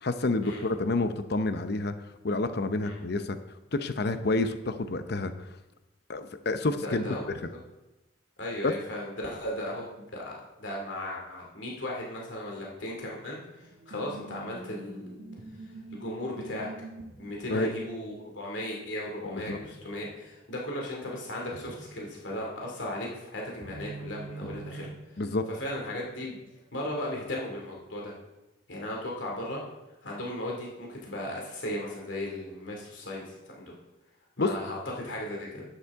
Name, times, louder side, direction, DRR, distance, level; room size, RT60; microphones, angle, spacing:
voice 1, 0.0-1.9 2.2-3.4 3.7-5.3 6.1-7.2 8.6-8.7 17.5-17.7 19.2-19.6 25.2-25.4 34.4-34.6, left 2 dB, 60° left, 10 dB, 0.7 m, -28 dB
voice 2, 6.8-7.3 8.4-10.3 10.6-13.4 13.9-15.2 15.9-16.7 17.2-24.9 25.6-26.4 26.7-28.1 28.7-29.6 30.0-33.7 34.4-35.6, left 1 dB, 85° left, -2 dB, 2.4 m, -36 dB
sound 1, 13.6-19.2 19.5-20.2 20.5-20.6 21.5-22.3 23.1-26.4 27.2-27.6, right 3 dB, 55° right, 1.2 m, -46 dB
11.5 x 9.7 x 3.6 m, 0.99 s
head